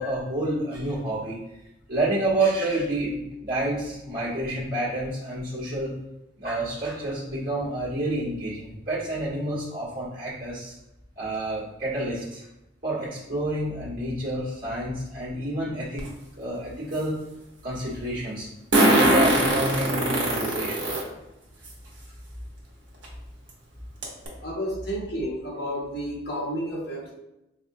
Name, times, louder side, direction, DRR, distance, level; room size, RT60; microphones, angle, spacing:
voice 1, 0.0-1.4 1.9-5.9 6.4-10.7 11.2-12.5 12.8-16.0 16.3-17.2 17.6-18.5 18.8-20.9, right 1 dB, 45° right, -8 dB, 1.4 m, -29 dB
Fart, 16.0-16.1 18.7-21.0 21.7-21.8 23.0-23.1 23.5-23.6 24.0-24.3, right 1 dB, 65° right, 1.1 m, -20 dB
voice 2, 24.4-27.1, equal, 55° left, -4 dB, 1.1 m, -31 dB
4.4 x 2.6 x 2.6 m, 0.93 s
head